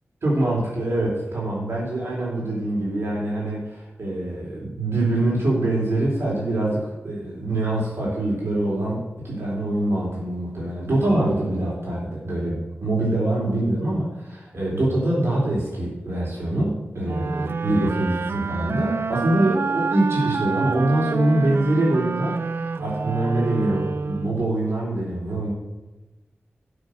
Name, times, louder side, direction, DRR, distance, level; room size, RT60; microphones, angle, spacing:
voice 1, 0.2-25.5, right 1 dB, 80° right, -4 dB, 4.0 m, -24 dB
sound 1, 17.0-24.5, right 4 dB, 60° right, 0.4 m, -28 dB
11.5 x 6.3 x 6.7 m, 1.1 s
wide cardioid pair, 110°, 4 cm